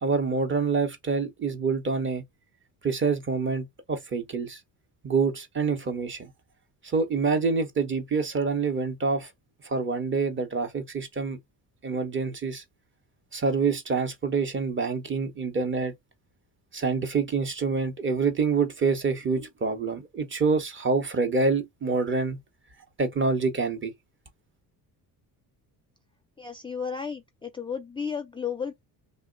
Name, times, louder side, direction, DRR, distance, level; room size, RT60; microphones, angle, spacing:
voice 1, 0.0-2.2 2.8-4.6 5.0-6.3 6.8-9.3 9.6-11.4 11.8-12.6 13.3-15.9 16.7-22.4 23.0-23.9, right 4 dB, 30° right, 0.8 m, -26 dB
voice 2, 26.4-28.8, left 6 dB, 15° left, 0.4 m, -33 dB
3.0 x 2.1 x 3.8 m
cardioid pair, 120°, 40 cm